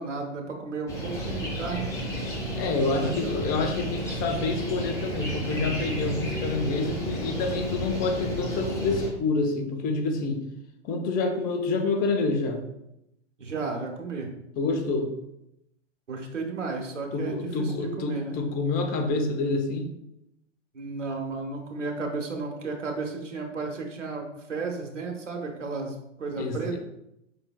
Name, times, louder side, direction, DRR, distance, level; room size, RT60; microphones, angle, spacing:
voice 1, 0.0-1.9 3.0-3.3 13.4-14.3 16.1-18.4 20.7-26.8, right 4 dB, 85° right, 2 dB, 1.2 m, -33 dB
sound 1, 0.9-9.1, equal, 10° left, 1.6 m, -32 dB
voice 2, 2.5-10.4 10.8-12.7 14.6-15.1 17.1-19.9 26.4-26.8, left 3 dB, 25° left, 3 dB, 0.7 m, -27 dB
6.0 x 3.8 x 2.2 m, 0.83 s
hypercardioid pair, 115°, 36 cm